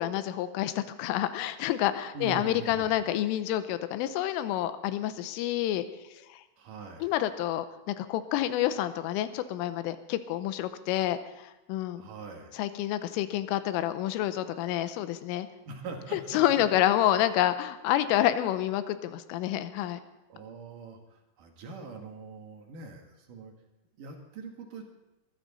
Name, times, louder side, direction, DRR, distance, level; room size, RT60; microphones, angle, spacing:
voice 1, 0.0-5.8 6.3-6.4 7.0-12.0 12.6-15.5 16.3-20.0, left 12 dB, 90° left, 11 dB, 3.3 m, -28 dB
voice 2, 2.1-3.0 6.6-7.1 12.0-12.6 15.7-16.6 20.3-23.5 24.0-24.8, right 4 dB, 60° right, 2 dB, 2.4 m, -43 dB
22.0 x 14.0 x 4.1 m, 0.99 s
omnidirectional pair, 5.8 m